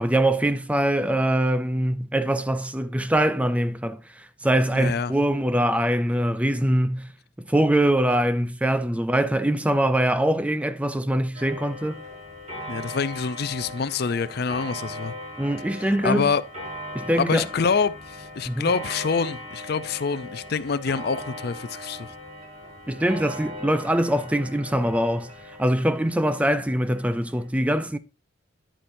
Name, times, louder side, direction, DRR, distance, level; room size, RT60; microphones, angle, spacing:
voice 1, 0.0-7.1 7.4-12.0 15.4-16.3 16.9-17.5 18.5-18.7 22.9-28.0, right 1 dB, 5° right, 0.4 m, -23 dB
voice 2, 4.7-5.1 12.7-15.1 16.0-16.4 17.2-22.1, left 5 dB, 55° left, 0.5 m, -26 dB
Clock, 11.3-27.5, left 1 dB, 35° right, 5.6 m, -39 dB
10.0 x 8.7 x 2.6 m
head